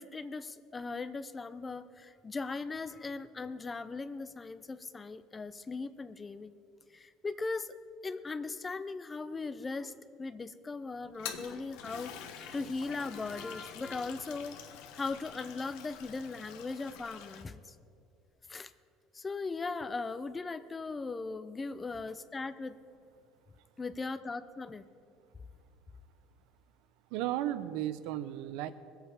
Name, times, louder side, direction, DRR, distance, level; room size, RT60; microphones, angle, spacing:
voice 1, 0.0-6.5 6.9-7.7 8.0-14.6 14.9-17.6 18.5-18.7 19.1-22.8 23.8-24.8, left 3 dB, 15° left, 14 dB, 0.4 m, -39 dB
Toilet flush, 11.0-17.4, left 8 dB, 75° left, 1.1 m, -46 dB
voice 2, 27.1-28.7, right 13 dB, 75° right, 13 dB, 0.7 m, -34 dB
21.5 x 8.1 x 4.8 m, 2.5 s
cardioid pair, 170°, 0 cm